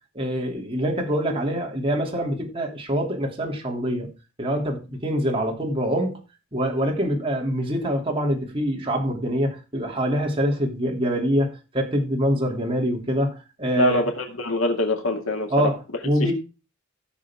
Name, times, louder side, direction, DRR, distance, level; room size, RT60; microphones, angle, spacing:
voice 1, 0.1-4.1 4.4-6.2 6.5-14.0 15.5-15.8 16.0-16.3, equal, 25° right, 2.9 m, -25 dB
voice 2, 13.8-15.7, left 1 dB, 85° left, 2.4 m, -23 dB
15.5 x 6.6 x 3.6 m
head